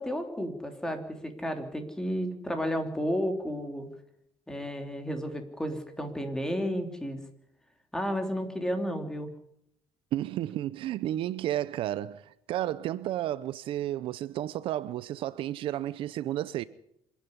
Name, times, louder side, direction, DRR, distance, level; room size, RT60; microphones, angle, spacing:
voice 1, 0.0-3.9 4.5-7.2 7.9-9.3, equal, 5° left, 3.2 m, -32 dB
voice 2, 10.1-16.6, right 13 dB, 60° right, 0.7 m, -32 dB
26.0 x 10.5 x 9.9 m
cardioid pair, 130°, 10 cm